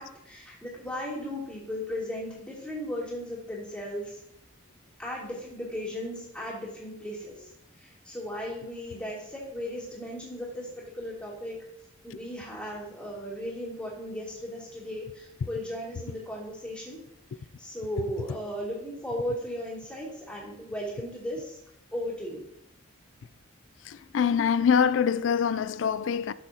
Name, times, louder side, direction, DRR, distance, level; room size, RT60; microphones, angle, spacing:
voice 1, 0.0-4.2 5.0-7.5 7.8-10.7 10.9-11.6 12.0-17.0 17.6-21.6 21.9-22.4, equal, 5° left, 2.9 m, -36 dB
voice 2, 23.9-26.3, left 7 dB, 70° left, 0.4 m, -24 dB
11.0 x 7.3 x 2.8 m
head